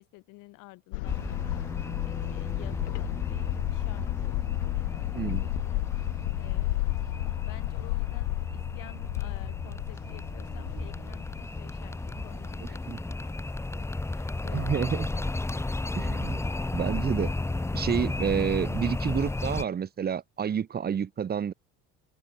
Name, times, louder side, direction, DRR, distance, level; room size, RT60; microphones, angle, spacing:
voice 1, 0.0-1.6 2.0-5.8 6.4-6.9 7.4-13.2 13.6-15.3, left 23 dB, 70° left, 7.5 m, -51 dB
sound 1, 0.9-12.9 13.2-13.3 13.7-13.8, left 25 dB, 90° left, 1.0 m, -32 dB
sound 2, 1.0-19.6, left 2 dB, 10° left, 0.9 m, -34 dB
voice 2, 5.1-5.4 12.9-13.0 14.5-15.1 16.0-16.4 16.7-17.3 17.7-21.5, right 8 dB, 30° right, 1.1 m, -29 dB
supercardioid pair, 90°, 32 cm